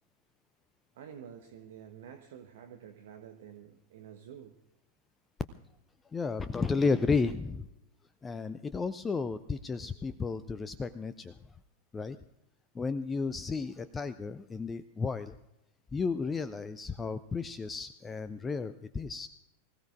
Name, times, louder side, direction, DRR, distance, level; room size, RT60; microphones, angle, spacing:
voice 1, 0.9-4.6, right 8 dB, 55° right, 4 dB, 1.1 m, -49 dB
voice 2, 6.1-7.7 8.2-11.4 11.9-12.2 12.7-15.3 15.9-19.3, left 4 dB, 15° left, 14 dB, 0.5 m, -33 dB
24.5 x 16.0 x 2.5 m, 0.88 s
figure-of-eight pair, 90°, 0 cm